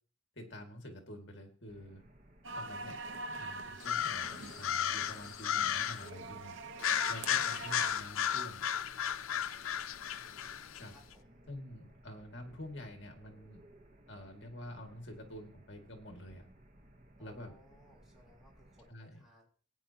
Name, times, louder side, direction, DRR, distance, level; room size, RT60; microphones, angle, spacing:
voice 1, 0.3-2.0 2.5-3.0 3.4-8.7 10.8-10.9 11.5-13.6 14.1-16.5 17.2-17.5 18.9-19.2, left 1 dB, 60° left, 4 dB, 2.2 m, -48 dB
sound 1, 1.7-18.9, right 1 dB, 40° right, 1.1 m, -60 dB
sound 2, 2.4-7.9, right 3 dB, 70° right, 1.0 m, -45 dB
sound 3, 3.8-6.1 6.8-10.8, left 9 dB, 85° left, 0.6 m, -34 dB
voice 2, 10.3-11.4 17.2-19.5, left 1 dB, ahead, -4 dB, 3.7 m, -64 dB
17.0 x 9.2 x 2.9 m, 0.41 s
head